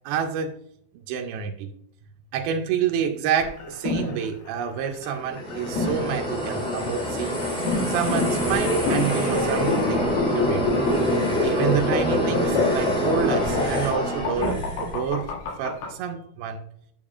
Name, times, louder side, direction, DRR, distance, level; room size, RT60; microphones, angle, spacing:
voice 1, 0.1-0.5 1.1-1.7 2.3-7.4 7.9-10.6 11.4-15.3 15.6-16.6, right 7 dB, 85° right, 3 dB, 2.5 m, -28 dB
sound 1, 3.4-15.9, left 3 dB, 80° left, 3.2 m, -28 dB
sound 2, 5.2-15.0, equal, ahead, 1.8 m, -26 dB
8.8 x 7.1 x 2.4 m, 0.69 s
omnidirectional pair, 4.3 m